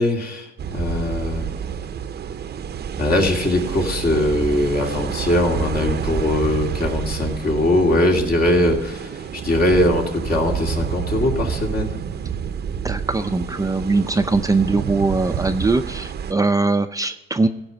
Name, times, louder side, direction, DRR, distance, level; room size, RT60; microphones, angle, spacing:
voice 1, 0.0-1.5 3.0-12.0, left 1 dB, 50° left, 1 dB, 2.6 m, -21 dB
sound 1, 0.6-16.3, right 7 dB, 55° right, 0.7 m, -29 dB
voice 2, 12.8-17.5, right 3 dB, 15° right, 7 dB, 0.6 m, -21 dB
15.5 x 5.4 x 7.0 m, 0.98 s
cardioid pair, 90°, 20 cm